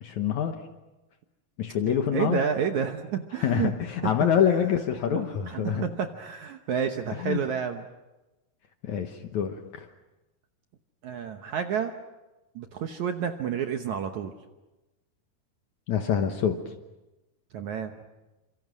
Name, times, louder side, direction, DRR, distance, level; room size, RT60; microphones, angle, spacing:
voice 1, 0.0-0.6 1.6-2.4 3.4-5.9 7.2-7.4 8.8-9.9 15.9-16.6, left 8 dB, 65° left, 6 dB, 2.1 m, -26 dB
voice 2, 1.9-3.7 4.0-4.1 5.1-7.8 11.0-12.0 12.6-14.3 17.5-17.9, right 7 dB, 65° right, 6 dB, 1.9 m, -30 dB
28.5 x 26.0 x 6.2 m, 1.0 s
omnidirectional pair, 4.5 m